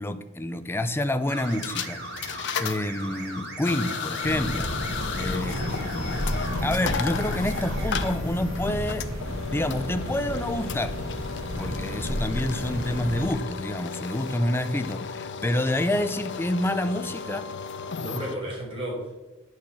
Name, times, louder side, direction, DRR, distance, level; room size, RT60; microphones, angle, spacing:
voice 1, 0.0-4.7 5.1-5.6 5.9-6.2 6.6-9.1 9.5-11.0 11.6-17.5, left 1 dB, 10° left, 10 dB, 0.5 m, -28 dB
sound 1, 1.3-8.1, right 2 dB, 55° right, 1.7 m, -39 dB
sound 2, 1.4-18.4, left 6 dB, 60° left, 0.6 m, -35 dB
sound 3, 4.2-13.3, equal, 75° right, 1.4 m, -31 dB
voice 2, 5.4-5.8 18.0-19.2, equal, 25° right, -5 dB, 3.9 m, -33 dB
9.4 x 4.6 x 7.0 m, 1.0 s
head